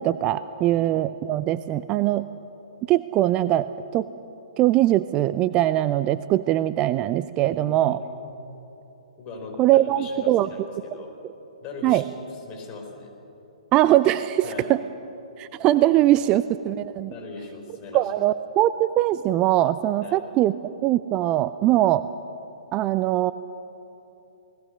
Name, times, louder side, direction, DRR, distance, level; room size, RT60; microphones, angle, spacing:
voice 1, 0.0-2.3 2.9-3.7 3.9-4.1 4.6-8.0 9.6-10.5 11.8-12.0 13.7-14.8 15.4-17.1 17.9-20.5 20.8-22.0 22.7-23.3, right 14 dB, 25° right, 14 dB, 0.4 m, -21 dB
voice 2, 7.4-8.3 9.2-11.2 11.6-13.1 14.4-14.7 15.5-16.3 17.1-18.1 20.0-20.2, left 3 dB, 25° left, 1 dB, 5.0 m, -40 dB
28.5 x 20.0 x 6.5 m, 3.0 s
figure-of-eight pair, 120°, 4 cm